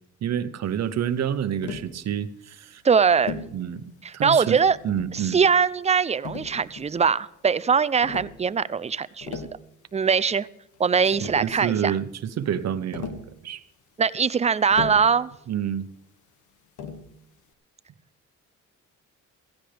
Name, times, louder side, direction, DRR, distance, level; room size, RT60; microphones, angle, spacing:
voice 1, 0.2-2.8 3.5-5.4 11.2-13.6 15.5-15.9, right 9 dB, 60° right, 0.9 m, -28 dB
Tap, 1.6-1.9 3.3-3.6 4.6-5.2 6.2-7.0 8.0-8.4 9.1-9.6 10.8-10.9 11.1-11.6 12.9-13.3 14.7-15.2 16.8-17.1, left 5 dB, 75° left, 1.6 m, -36 dB
voice 2, 2.8-3.4 4.0-4.8 5.1-9.4 9.9-10.5 10.8-12.0 14.0-15.3, right 6 dB, 20° right, 0.4 m, -22 dB
16.0 x 15.5 x 3.4 m
cardioid pair, 90°, 30 cm